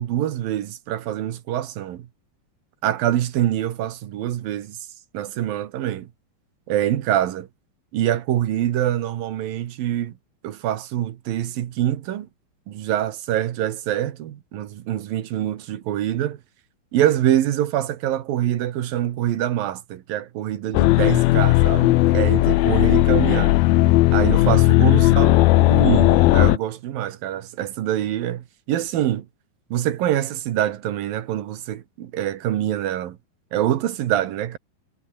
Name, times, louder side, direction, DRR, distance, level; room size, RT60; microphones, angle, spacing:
voice 1, 0.0-2.1 2.8-4.8 5.1-6.1 6.7-7.5 7.9-10.1 10.4-12.3 12.7-16.4 16.9-23.6 24.1-29.3 29.7-33.2 33.5-34.6, right 12 dB, 70° right, 3.1 m, -25 dB
sound 1, 20.7-26.6, left 18 dB, 75° left, 2.4 m, -16 dB
omnidirectional pair, 4.5 m